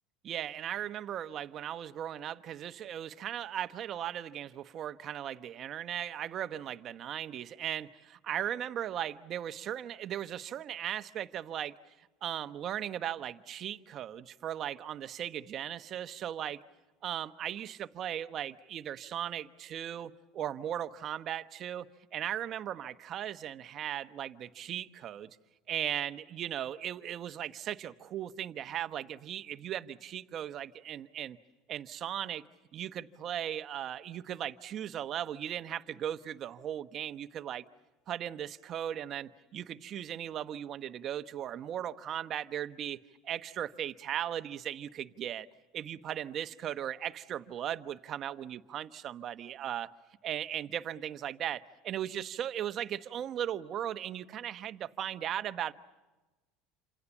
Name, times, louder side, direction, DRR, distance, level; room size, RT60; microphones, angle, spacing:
voice 1, 0.2-11.8 12.2-16.6 17.0-21.9 22.1-25.3 25.7-31.4 31.7-32.4 32.7-37.6 38.1-45.5 45.7-49.9 50.2-55.7, right 10 dB, 40° right, 1.1 m, -37 dB
28.5 x 27.0 x 7.2 m
supercardioid pair, 125°, 0 cm